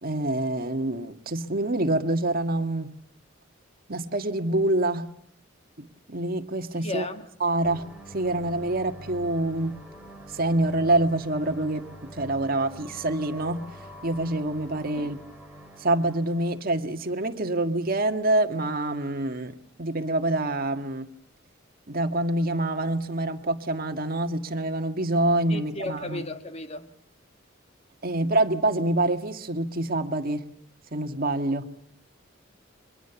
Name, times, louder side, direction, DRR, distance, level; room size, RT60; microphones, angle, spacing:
voice 1, 0.0-2.9 3.9-5.1 5.8-7.1 7.4-7.8 8.1-9.8 10.3-13.6 14.0-15.2 15.8-21.1 21.9-26.2 28.0-30.4 30.9-31.7, right 2 dB, 50° right, 1.7 m, -26 dB
voice 2, 6.8-7.3 15.0-15.1 25.5-26.9, left 2 dB, 35° left, 2.0 m, -34 dB
sound 1, 7.6-16.6, equal, 5° right, 3.9 m, -46 dB
29.5 x 24.0 x 7.0 m
head